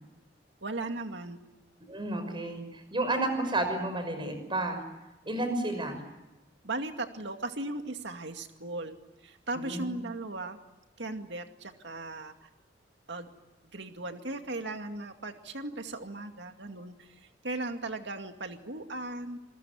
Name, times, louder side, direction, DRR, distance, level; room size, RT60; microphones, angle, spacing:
voice 1, 0.6-1.4 6.6-10.6 11.0-12.5 13.1-13.3 13.6-19.4, right 2 dB, 65° right, 6 dB, 2.3 m, -37 dB
voice 2, 1.9-4.8 5.3-6.0 9.6-9.9, right 2 dB, 25° right, 8 dB, 5.9 m, -31 dB
28.0 x 21.5 x 9.6 m, 1.0 s
head